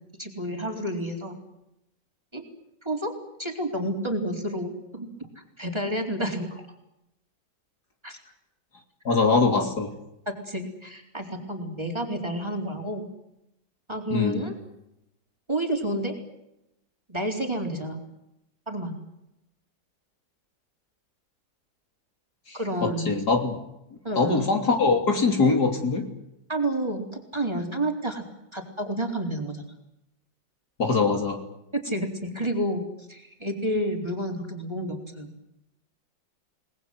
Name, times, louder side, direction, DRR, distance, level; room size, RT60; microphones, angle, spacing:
voice 1, 0.2-1.4 2.3-2.4 2.8-3.1 3.4-5.1 5.4-6.6 8.0-8.2 10.3-13.1 13.9-14.6 15.5-16.2 17.1-18.0 18.7-19.0 22.5-23.1 24.0-24.5 26.5-28.2 28.5-29.7 31.7-35.3, right 1 dB, 15° right, 3 dB, 4.0 m, -30 dB
voice 2, 9.1-9.9 14.1-14.4 22.5-23.6 24.1-26.1 30.8-31.4, left 4 dB, 60° left, 4 dB, 3.8 m, -23 dB
28.5 x 20.0 x 7.9 m, 0.86 s
omnidirectional pair, 2.0 m